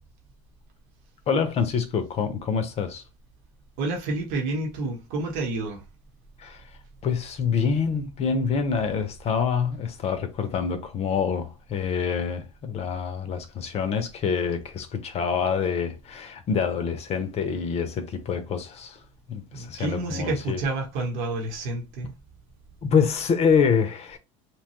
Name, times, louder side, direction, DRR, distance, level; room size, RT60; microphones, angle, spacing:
voice 1, 1.3-3.0 6.4-6.6 7.0-19.0 19.3-20.6 22.8-24.2, left 6 dB, 40° left, 0.6 m, -26 dB
voice 2, 3.8-5.8 19.5-22.1, right 2 dB, 65° right, 1.0 m, -29 dB
2.9 x 2.2 x 2.9 m
supercardioid pair, 90°, 16 cm